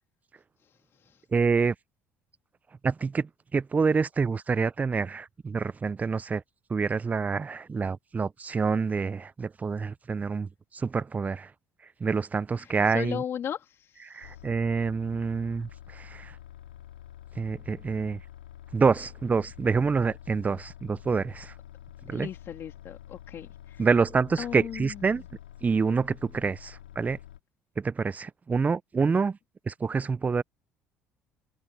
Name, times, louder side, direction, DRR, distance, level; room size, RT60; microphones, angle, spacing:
voice 1, 0.6-1.2 12.6-14.4 22.1-23.8 24.4-25.1, left 9 dB, 50° left, 3.6 m, -37 dB
voice 2, 1.3-1.7 2.8-6.4 6.7-11.5 12.0-13.2 14.1-16.4 17.3-18.2 18.7-21.5 22.1-22.3 23.8-25.2 25.6-27.2 27.8-29.4 29.7-30.4, right 5 dB, 30° right, 0.8 m, -27 dB
sound 1, 14.2-27.4, left 12 dB, 90° left, 4.7 m, -47 dB
hypercardioid pair, 55°, 5 cm